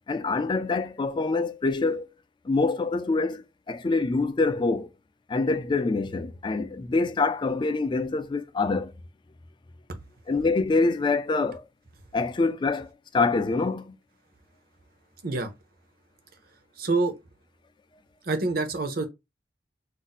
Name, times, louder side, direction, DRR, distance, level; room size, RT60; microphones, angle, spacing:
voice 1, 0.1-2.0 2.5-4.9 5.3-8.9 10.3-11.6 12.1-12.9 13.1-13.9, left 3 dB, 25° left, 0.3 m, -25 dB
voice 2, 16.8-17.1 18.2-19.1, right 3 dB, 55° right, 0.7 m, -26 dB
2.5 x 2.1 x 4.0 m
head